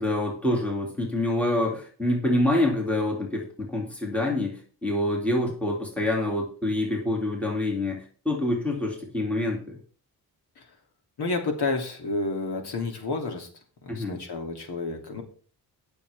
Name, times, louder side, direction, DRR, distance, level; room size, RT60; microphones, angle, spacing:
voice 1, 0.0-9.8 13.9-14.2, left 1 dB, 5° left, -2 dB, 2.5 m, -26 dB
voice 2, 11.2-13.5 13.8-15.2, left 3 dB, 75° left, 3 dB, 2.9 m, -30 dB
19.0 x 6.8 x 3.5 m, 0.41 s
wide cardioid pair, 180°, 40 cm